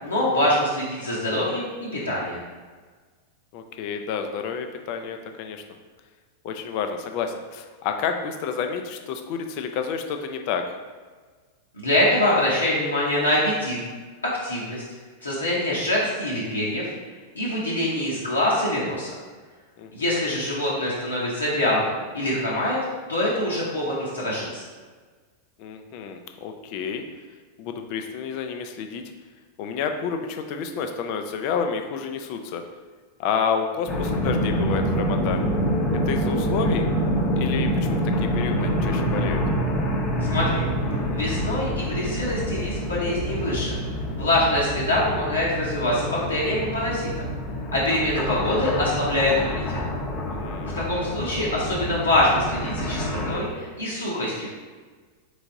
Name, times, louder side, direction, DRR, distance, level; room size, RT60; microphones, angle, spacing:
voice 1, 0.0-2.4 11.7-13.8 14.4-14.8 15.2-16.9 17.3-19.1 19.9-22.8 23.1-24.6 40.2-40.6 41.1-43.8 44.2-47.3 47.7-49.8 50.8-54.5, left 1 dB, 75° left, -7 dB, 0.9 m, -24 dB
voice 2, 3.5-5.6 6.4-10.6 19.8-20.4 25.6-27.0 27.6-29.0 29.6-32.6 33.2-35.4 36.1-36.9 37.3-39.4 50.3-50.8, left 6 dB, 45° left, 5 dB, 0.4 m, -30 dB
sound 1, 33.9-53.4, equal, 25° left, 0.8 m, -26 dB
3.9 x 3.4 x 3.7 m, 1.5 s
figure-of-eight pair, 90°, 0 cm